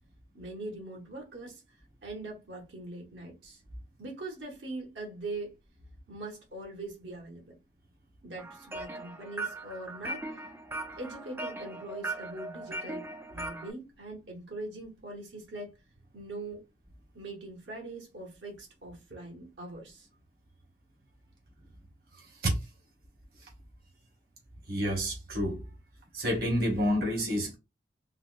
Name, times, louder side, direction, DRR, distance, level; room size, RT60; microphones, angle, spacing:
voice 1, 0.3-1.6 2.0-3.6 4.0-5.5 6.1-7.6 8.2-10.4 11.0-15.7 16.1-16.6 17.1-20.1, right 2 dB, 75° right, 1.1 m, -42 dB
sound 1, 8.4-13.7, right 2 dB, 15° right, 0.3 m, -39 dB
voice 2, 24.7-25.6 26.1-27.6, equal, 55° right, 1.2 m, -28 dB
3.8 x 2.1 x 2.4 m
head